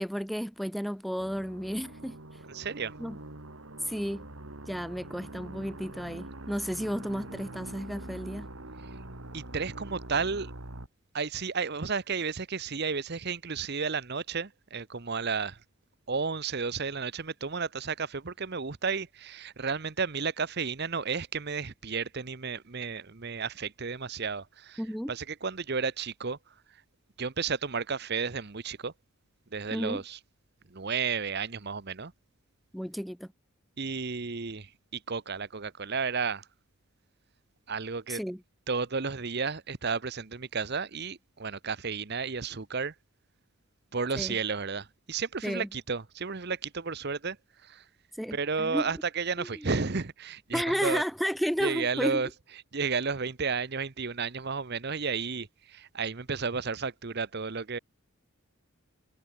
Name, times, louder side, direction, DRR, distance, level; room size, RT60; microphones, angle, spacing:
voice 1, 0.0-2.4 3.0-3.2 3.8-4.3 4.7-8.5 24.8-25.1 29.7-30.0 32.7-33.3 38.1-38.4 44.2-44.4 45.4-45.7 48.1-48.8 49.4-49.7 50.5-52.2, equal, ahead, 0.5 m, -32 dB
sound 1, 1.2-10.9, right 1 dB, 65° right, 2.6 m, -44 dB
voice 2, 2.5-2.9 9.3-10.5 11.1-15.6 16.1-24.8 25.1-26.4 27.2-28.9 29.5-30.2 30.7-32.1 33.8-36.4 37.7-38.2 38.7-42.9 43.9-47.4 47.6-47.8 48.3-51.0 51.6-52.3 52.7-57.8, right 5 dB, 45° right, 0.9 m, -32 dB
head